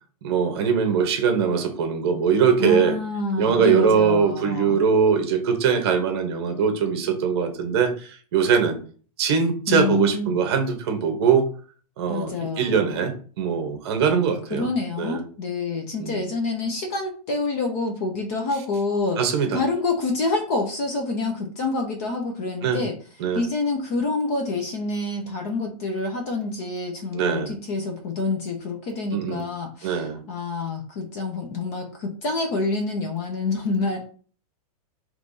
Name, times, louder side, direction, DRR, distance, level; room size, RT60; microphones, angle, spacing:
voice 1, 0.2-3.0 3.4-8.8 9.2-11.5 12.0-12.3 12.6-14.7 15.0-15.2 16.0-16.2 19.2-19.6 22.6-22.8 23.2-23.4 27.1-27.5 29.1-29.5 29.8-30.2, right 6 dB, 40° right, 5 dB, 1.0 m, -22 dB
voice 2, 2.6-4.8 9.7-10.4 12.1-13.1 14.5-19.2 19.5-23.0 23.3-34.0, left 3 dB, 25° left, 3 dB, 0.5 m, -27 dB
5.4 x 3.0 x 2.6 m, 0.42 s
supercardioid pair, 175°, 20 cm